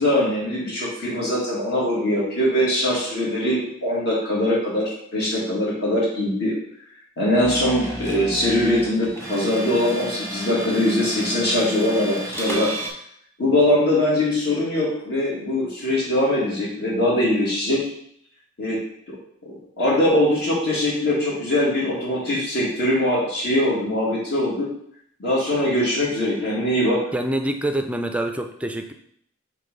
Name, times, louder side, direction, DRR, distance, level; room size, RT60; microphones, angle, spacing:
voice 1, 0.0-4.8 5.1-6.5 7.2-12.7 13.4-17.8 18.6-18.8 19.1-19.2 19.8-24.7 25.2-27.0, left 1 dB, 55° left, -5 dB, 1.8 m, -22 dB
sound 1, 7.4-12.9, right 1 dB, 15° left, 1.3 m, -32 dB
voice 2, 27.1-28.9, right 1 dB, 5° right, 5 dB, 0.4 m, -26 dB
5.7 x 3.1 x 5.2 m, 0.69 s
head